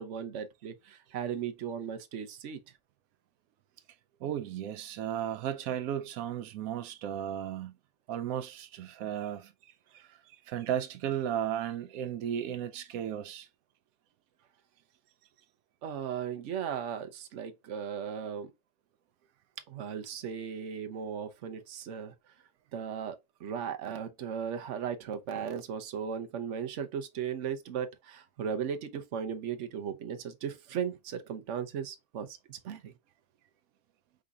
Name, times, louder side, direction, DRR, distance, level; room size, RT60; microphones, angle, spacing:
voice 1, 0.0-2.6 15.8-18.5 19.7-22.1 22.7-32.9, right 7 dB, 65° right, 1.1 m, -37 dB
voice 2, 4.2-7.7 8.1-13.5, right 10 dB, 90° right, 1.1 m, -35 dB
5.0 x 3.9 x 2.3 m
omnidirectional pair, 1.4 m